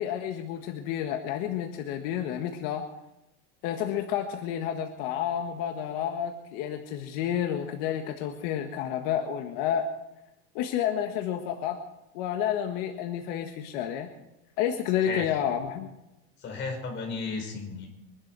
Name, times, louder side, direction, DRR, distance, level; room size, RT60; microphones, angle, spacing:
voice 1, 0.0-2.8 3.6-9.9 10.5-11.8 12.1-14.1 14.6-15.9, left 9 dB, 80° left, 4 dB, 1.6 m, -30 dB
voice 2, 16.4-17.9, left 4 dB, 40° left, 2 dB, 5.2 m, -34 dB
23.5 x 12.0 x 4.7 m, 0.92 s
cardioid pair, 150°, 30 cm